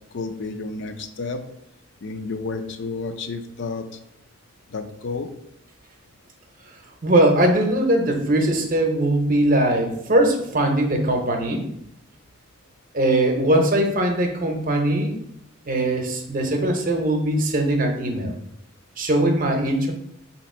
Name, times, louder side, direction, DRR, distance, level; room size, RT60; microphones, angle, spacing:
voice 1, 0.1-1.4 2.0-4.0 4.7-5.3, left 3 dB, 60° left, 7 dB, 0.5 m, -31 dB
voice 2, 7.0-11.6 12.9-15.2 15.7-18.3 19.0-19.9, right 1 dB, 40° right, 4 dB, 0.7 m, -20 dB
4.3 x 2.9 x 4.2 m, 0.75 s
head